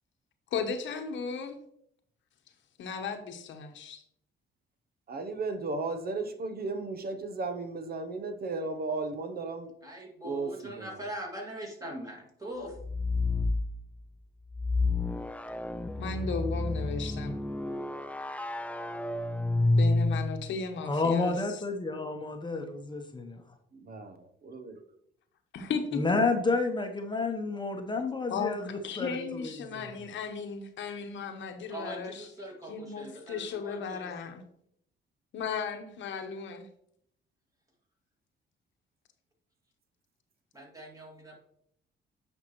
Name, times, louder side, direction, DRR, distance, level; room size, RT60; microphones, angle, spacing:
voice 1, 0.5-1.6 2.8-4.0 16.0-17.4 19.8-21.6 25.5-26.2 28.3-32.2 32.7-34.4 35.3-36.7, left 5 dB, 70° left, 6 dB, 1.0 m, -35 dB
voice 2, 5.1-9.7 10.2-10.5 10.8-10.9 23.9-24.1, right 3 dB, 50° right, 8 dB, 0.8 m, -34 dB
voice 3, 9.8-12.8 31.7-34.1 40.5-41.4, equal, 15° right, 1 dB, 2.2 m, -42 dB
sound 1, 12.7-13.7 14.5-20.5, left 2 dB, 5° left, 0.3 m, -29 dB
voice 4, 20.8-23.4 26.0-29.9, left 3 dB, 20° left, 4 dB, 0.9 m, -30 dB
8.8 x 5.4 x 3.0 m, 0.71 s
cardioid pair, 90°, 20 cm